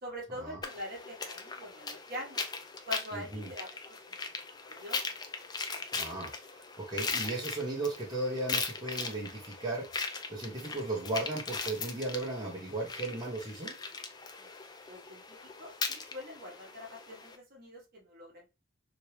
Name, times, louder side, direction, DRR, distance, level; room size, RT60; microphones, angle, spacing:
voice 1, 0.0-2.4 2.9-4.3 4.7-5.0 14.4-14.5 14.9-15.2 15.6-18.5, left 1 dB, 45° right, 1.1 m, -44 dB
sound 1, 0.6-17.4, left 4 dB, 20° left, 0.3 m, -39 dB
voice 2, 3.1-3.5 5.9-6.3 6.8-9.9 10.3-13.7, right 2 dB, 20° right, 0.8 m, -36 dB
2.9 x 2.6 x 3.1 m
head